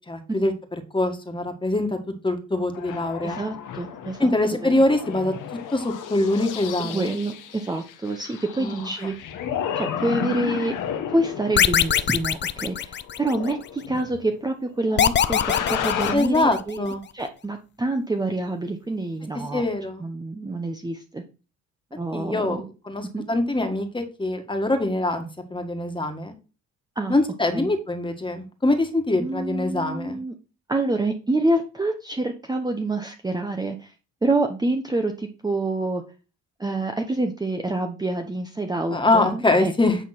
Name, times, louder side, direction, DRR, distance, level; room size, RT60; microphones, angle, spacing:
voice 1, 0.1-0.5 0.9-2.0 2.2-3.4 4.2-5.3 5.7-7.1 8.6-8.9 16.1-17.0 19.5-20.0 22.1-25.3 25.5-26.3 27.1-30.2 38.9-40.0, left 2 dB, 15° left, 5 dB, 1.8 m, -23 dB
sound 1, 2.7-14.3 14.8-16.2, left 8 dB, 75° left, 1.4 m, -33 dB
voice 2, 3.2-4.3 4.6-4.7 6.8-9.3 9.8-10.7 11.1-16.8 17.1-19.6 20.0-21.2 21.9-22.6 23.1-23.2 27.0-27.2 27.5-27.7 29.2-30.3 30.7-33.9 34.2-36.0 36.6-39.7, right 2 dB, 10° right, 4 dB, 0.9 m, -27 dB
sound 2, 11.6-13.5 15.0-16.8, left 8 dB, 35° left, 0.6 m, -22 dB
9.1 x 3.6 x 6.0 m, 0.33 s
cardioid pair, 90°, 32 cm